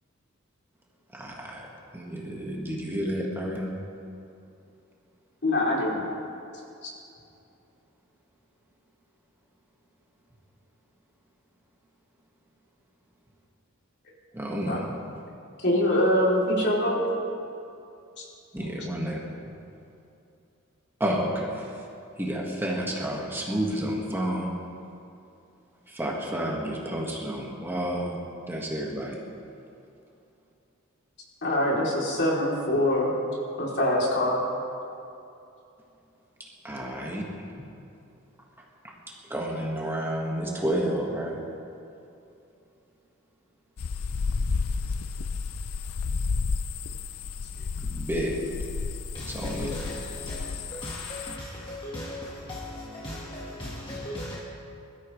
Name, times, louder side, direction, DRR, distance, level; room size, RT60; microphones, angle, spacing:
voice 1, 1.1-1.7 1.9-3.7 14.3-14.8 18.5-19.2 21.0-21.8 22.2-24.5 25.9-28.2 28.5-29.2 36.6-37.3 38.8-38.9 39.3-41.4 47.8-48.3 49.3-49.7, right 1 dB, 10° right, -3 dB, 1.7 m, -30 dB
voice 2, 5.4-6.1 6.8-6.9 14.7-14.8 15.6-17.0 18.2-18.3 31.4-33.1 33.6-34.4, left 1 dB, 55° left, -4 dB, 3.2 m, -24 dB
sound 1, 43.8-51.4, left 4 dB, 85° left, 0.5 m, -31 dB
voice 3, 49.1-54.4, left 1 dB, 25° left, -6 dB, 1.6 m, -37 dB
22.0 x 13.5 x 3.3 m, 2.7 s
head